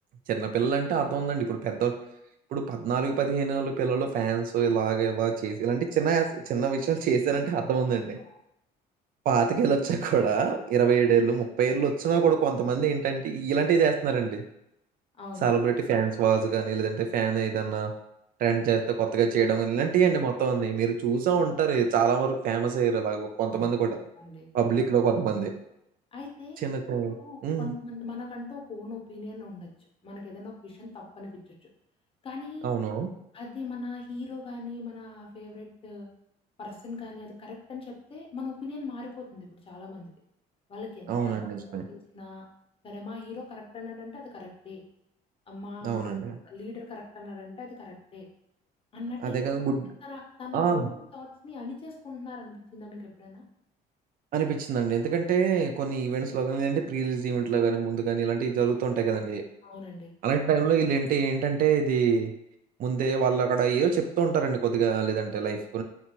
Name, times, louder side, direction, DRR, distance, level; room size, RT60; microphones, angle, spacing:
voice 1, 0.3-2.0 2.5-8.2 9.3-14.4 15.4-17.9 18.4-24.0 24.5-25.5 26.6-27.1 27.4-27.7 32.6-33.1 41.1-41.8 45.8-46.4 49.2-49.8 50.5-50.9 54.3-59.4 60.2-62.3 62.8-65.8, right 6 dB, 55° right, 5 dB, 0.4 m, -25 dB
voice 2, 24.2-24.5 26.1-26.6 27.2-29.7 30.0-31.7 32.2-32.7 33.3-36.1 36.6-40.1 40.7-41.4 41.7-42.4 42.8-44.8 45.5-46.2 46.4-48.3 48.9-49.5 50.0-53.4 59.6-60.1, left 3 dB, 30° left, -1 dB, 0.7 m, -40 dB
2.8 x 2.2 x 2.9 m, 0.80 s
cardioid pair, 110°, 17 cm